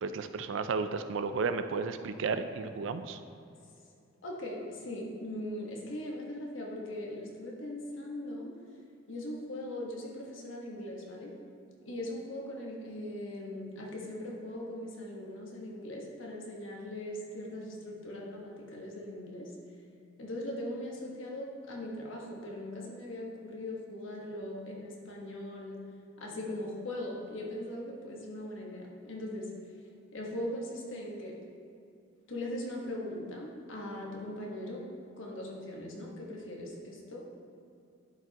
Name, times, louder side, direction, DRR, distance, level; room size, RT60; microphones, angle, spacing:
voice 1, 0.0-3.2, right 4 dB, 75° right, 9 dB, 0.4 m, -33 dB
voice 2, 4.2-8.5 9.1-11.3 11.8-19.5 20.2-25.8 26.2-29.5 30.1-31.3 32.3-34.8 35.2-37.2, left 1 dB, 85° left, -2 dB, 1.3 m, -40 dB
11.0 x 4.9 x 2.9 m, 2.5 s
head